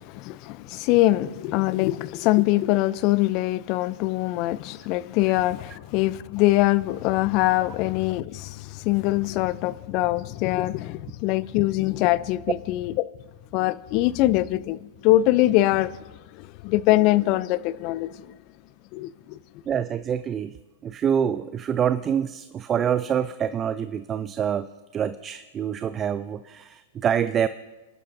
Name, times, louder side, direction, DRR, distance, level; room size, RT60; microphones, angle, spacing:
voice 1, 0.0-12.9 13.5-18.4 18.9-19.4, left 17 dB, 45° left, 0.5 m, -23 dB
voice 2, 19.7-20.6 20.8-27.5, right 8 dB, 25° right, 0.4 m, -26 dB
29.0 x 11.5 x 2.6 m
hypercardioid pair, 115°, 0 cm